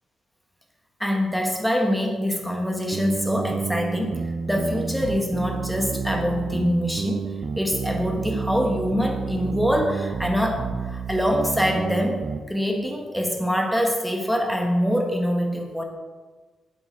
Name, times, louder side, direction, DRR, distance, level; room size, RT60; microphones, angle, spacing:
voice 1, 1.0-7.3 7.6-15.8, equal, ahead, 0 dB, 1.4 m, -24 dB
sound 1, 2.9-12.4, right 5 dB, 40° right, 0.5 m, -30 dB
7.8 x 7.6 x 4.6 m, 1.4 s
cardioid pair, 135°, 0 cm